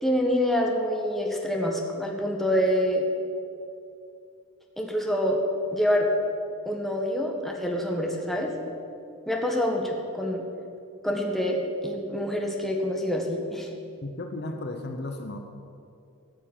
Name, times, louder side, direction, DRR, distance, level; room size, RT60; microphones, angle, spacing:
voice 1, 0.0-3.0 4.8-5.4 5.7-6.1 6.6-8.5 9.3-10.4 11.0-13.7, equal, ahead, 0 dB, 1.6 m, -26 dB
voice 2, 14.0-15.4, left 2 dB, 50° left, 5 dB, 1.0 m, -34 dB
14.5 x 7.2 x 8.9 m, 2.5 s
head